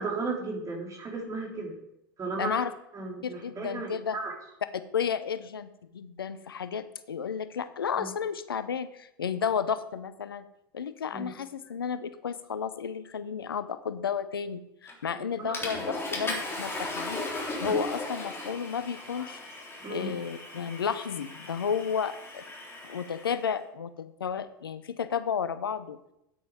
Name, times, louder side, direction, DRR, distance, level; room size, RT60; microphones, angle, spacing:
voice 1, 0.0-1.8 2.2-2.6 2.9-4.3 7.9-8.1 11.1-11.3 15.1-15.5 19.8-20.1, right 3 dB, 25° right, -1 dB, 3.8 m, -35 dB
voice 2, 2.4-2.7 3.2-4.2 4.9-10.5 10.7-19.4 19.9-22.4 22.8-26.0, left 7 dB, 90° left, 13 dB, 0.6 m, -32 dB
Water / Toilet flush, 14.9-15.1 15.5-23.4, left 2 dB, 20° left, 3.7 m, -37 dB
9.1 x 8.7 x 5.0 m, 0.82 s
hypercardioid pair, 85°, 12 cm